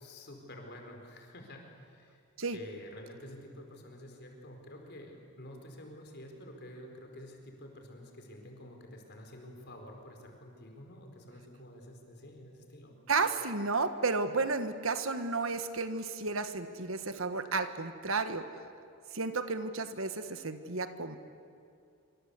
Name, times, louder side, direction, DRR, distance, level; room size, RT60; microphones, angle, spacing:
voice 1, 0.0-2.2 2.5-13.0, left 1 dB, 50° left, 3 dB, 4.7 m, -49 dB
voice 2, 13.1-18.5 19.1-21.2, right 4 dB, 65° right, 10 dB, 1.5 m, -32 dB
26.0 x 25.5 x 8.4 m, 2.5 s
head